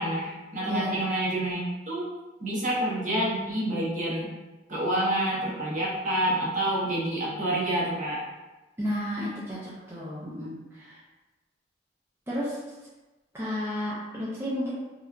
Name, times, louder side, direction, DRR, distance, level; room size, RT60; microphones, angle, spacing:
voice 1, 0.0-1.6 1.9-2.1 2.4-4.3 4.7-8.2, right 1 dB, 45° right, -6 dB, 0.9 m, -28 dB
voice 2, 0.7-1.0 8.8-11.0 12.3-12.6 13.3-14.7, equal, 15° right, -9 dB, 0.5 m, -32 dB
3.0 x 2.2 x 2.4 m, 1.1 s
head